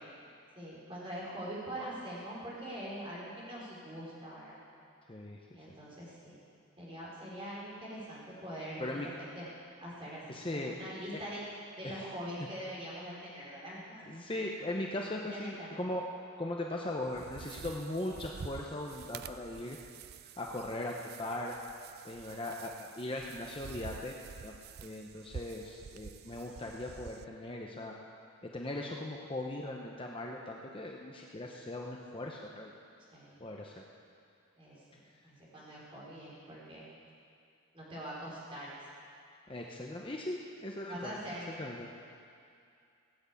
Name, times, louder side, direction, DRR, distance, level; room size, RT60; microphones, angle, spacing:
voice 1, 0.6-4.6 5.5-6.4 6.8-9.5 9.8-11.4 11.8-14.0 15.3-15.7 33.1-33.5 34.6-36.8 37.7-38.8 40.8-41.5, equal, 25° right, -7 dB, 4.3 m, -43 dB
voice 2, 10.3-10.7 11.8-12.1 14.1-16.1 16.4-19.8 20.4-21.6 22.0-24.2 24.4-24.5 24.8-27.9 28.4-32.7 33.4-33.8 39.5-41.2 41.6-41.9, left 1 dB, 25° left, -1 dB, 0.8 m, -39 dB
sound 1, 17.0-27.2, right 6 dB, 45° right, 0.3 m, -49 dB
17.0 x 8.0 x 8.3 m, 2.5 s
head